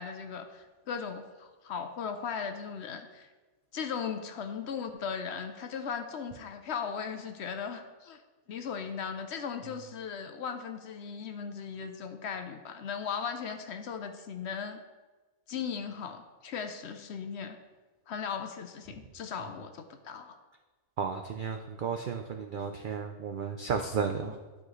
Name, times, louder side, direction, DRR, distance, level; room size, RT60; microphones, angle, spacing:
voice 1, 0.0-3.3 3.7-8.2 8.5-14.8 15.5-17.6 18.1-20.4 24.2-24.4, left 6 dB, 65° left, 7 dB, 0.8 m, -37 dB
voice 2, 21.0-24.4, right 6 dB, 90° right, 5 dB, 0.4 m, -33 dB
12.0 x 4.8 x 3.1 m, 1.3 s
omnidirectional pair, 1.4 m